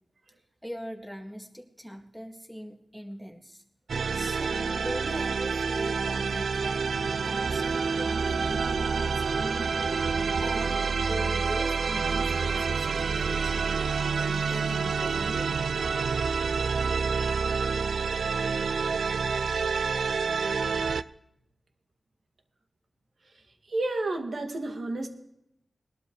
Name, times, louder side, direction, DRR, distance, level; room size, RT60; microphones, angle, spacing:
voice 1, 0.6-3.6 4.1-6.8 7.2-9.7 10.4-13.8 14.2-15.5, equal, ahead, 3 dB, 2.1 m, -41 dB
sound 1, 3.9-21.0, right 5 dB, 80° right, 0.4 m, -28 dB
voice 2, 23.7-25.1, right 2 dB, 60° right, 4 dB, 2.2 m, -30 dB
21.0 x 12.0 x 3.2 m, 0.78 s
wide cardioid pair, 80°, 0 cm